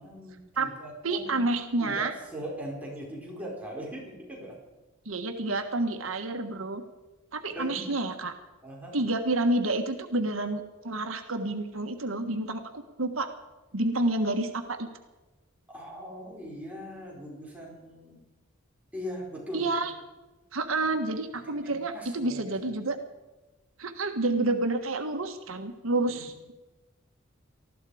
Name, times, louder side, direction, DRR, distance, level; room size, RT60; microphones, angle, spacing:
voice 1, 0.0-1.4 1.8-4.6 7.5-7.8 8.6-8.9 15.7-18.2 18.9-19.8 21.4-22.8 26.1-26.3, equal, 5° right, -3 dB, 4.9 m, -40 dB
voice 2, 1.0-2.1 5.0-6.8 7.3-8.3 8.9-13.3 13.7-14.9 19.5-19.9 20.5-23.0 23.8-26.3, right 2 dB, 85° right, 6 dB, 1.4 m, -29 dB
19.0 x 15.0 x 5.0 m, 1.1 s
head